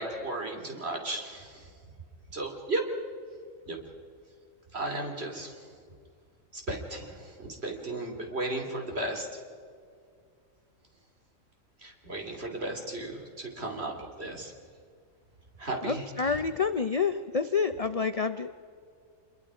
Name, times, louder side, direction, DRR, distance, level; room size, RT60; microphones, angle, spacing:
voice 1, 0.0-1.6 2.3-2.8 3.7-3.8 4.7-5.6 6.5-9.3 11.8-14.5 15.6-16.4, right 2 dB, 50° right, 2 dB, 3.1 m, -35 dB
voice 2, 15.8-18.5, left 5 dB, 40° left, 10 dB, 0.5 m, -28 dB
26.5 x 22.0 x 4.9 m, 2.2 s
omnidirectional pair, 1.4 m